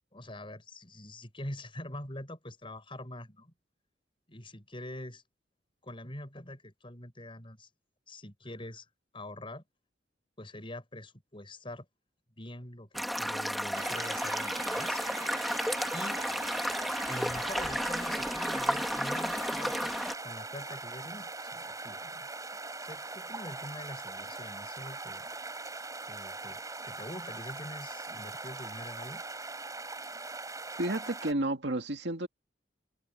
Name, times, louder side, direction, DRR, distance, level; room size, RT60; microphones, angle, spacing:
voice 1, 0.1-3.5 4.3-5.2 5.8-7.7 8.1-8.9 9.1-9.6 10.4-11.9 12.4-15.0 15.9-16.2 17.1-19.9 20.2-22.3 22.8-25.2 26.0-29.2, left 1 dB, 30° left, 6.7 m, -44 dB
sound 1, 12.9-20.1, equal, ahead, 1.6 m, -32 dB
sound 2, 13.7-31.3, right 3 dB, 20° right, 5.2 m, -41 dB
voice 2, 30.8-32.3, right 1 dB, 70° right, 2.4 m, -31 dB
head